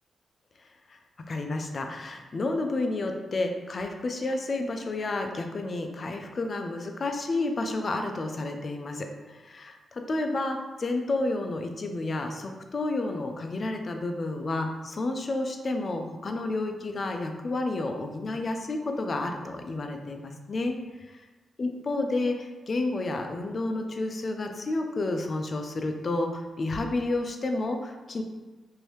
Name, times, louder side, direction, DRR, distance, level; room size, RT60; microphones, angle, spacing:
voice 1, 1.3-20.8 21.6-28.2, left 2 dB, 45° left, 5 dB, 0.4 m, -30 dB
3.0 x 2.6 x 3.2 m, 1.2 s
cardioid pair, 85°, 0 cm